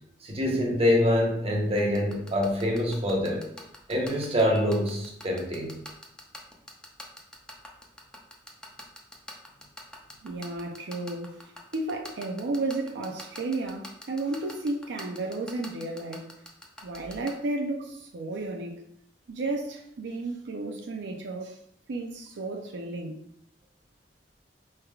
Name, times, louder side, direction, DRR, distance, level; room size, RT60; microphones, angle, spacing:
voice 1, 0.2-3.5 3.9-5.7, left 1 dB, 35° right, 0.8 m, -25 dB
sound 1, 1.8-17.3, left 1 dB, 5° left, 0.6 m, -42 dB
voice 2, 10.2-16.3 16.8-18.8 19.3-21.6 21.9-23.2, right 2 dB, 80° right, 0.5 m, -33 dB
4.5 x 3.3 x 2.3 m
head